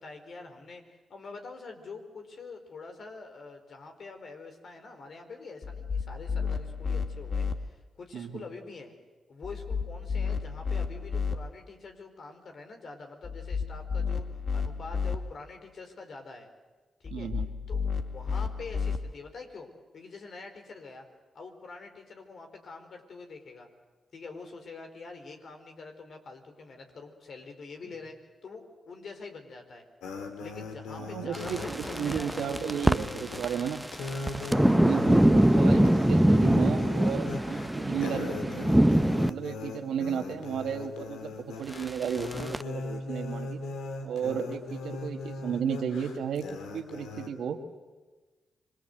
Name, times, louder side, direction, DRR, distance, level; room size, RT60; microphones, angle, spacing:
voice 1, 0.0-9.0 9.3-16.5 17.0-17.3 17.7-17.8 18.1-21.1 21.3-23.7 24.1-29.8 30.4-32.5 34.9-35.3 45.0-45.3, left 4 dB, 60° left, 5 dB, 4.4 m, -45 dB
sound 1, 5.6-7.5 9.4-11.4 13.2-15.2 17.0-19.0, left 5 dB, 45° left, 2.2 m, -32 dB
voice 2, 17.1-17.5 31.0-33.8 34.5-38.7 39.3-43.6 44.0-47.6, right 7 dB, 75° right, 6 dB, 2.0 m, -34 dB
sound 2, 30.0-47.3, left 3 dB, 80° left, 2.7 m, -39 dB
sound 3, 31.3-39.3 41.7-42.6, right 1 dB, 10° right, 0.9 m, -24 dB
26.0 x 23.0 x 8.0 m, 1.3 s
hypercardioid pair, 40°, 0 cm